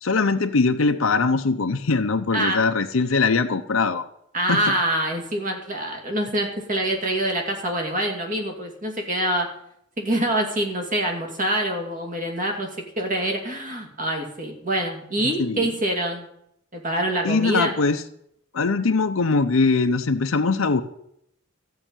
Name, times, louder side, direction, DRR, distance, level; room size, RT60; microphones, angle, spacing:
voice 1, 0.0-4.1 4.5-4.8 15.4-15.6 17.2-18.0 18.5-20.8, left 4 dB, 90° left, 7 dB, 0.7 m, -21 dB
voice 2, 2.3-2.6 4.3-9.5 10.0-12.7 13.0-16.3 16.7-17.7, right 1 dB, 40° right, 2 dB, 2.6 m, -25 dB
14.0 x 5.7 x 9.0 m, 0.74 s
head